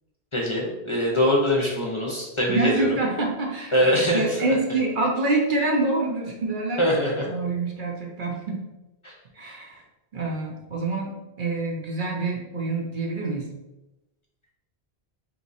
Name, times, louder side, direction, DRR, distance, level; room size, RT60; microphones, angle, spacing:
voice 1, 0.3-3.0 3.7-4.5 6.8-7.2 9.0-9.1, equal, 35° left, -3 dB, 0.7 m, -23 dB
voice 2, 2.5-6.9 7.3-8.7 9.3-9.8 10.1-13.5, right 3 dB, 55° right, -1 dB, 0.9 m, -26 dB
3.6 x 3.0 x 4.0 m, 1.0 s
omnidirectional pair, 1.1 m